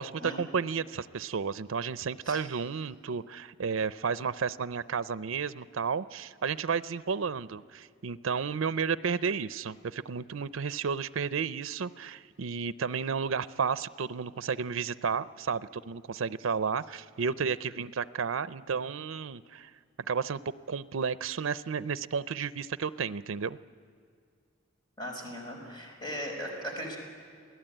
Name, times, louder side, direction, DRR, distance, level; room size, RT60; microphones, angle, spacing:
voice 1, 0.0-19.7 20.1-20.4 20.7-23.6, right 6 dB, 80° right, 15 dB, 0.5 m, -32 dB
voice 2, 25.0-27.0, equal, 20° left, 0 dB, 4.9 m, -38 dB
28.0 x 18.0 x 9.0 m, 2.2 s
head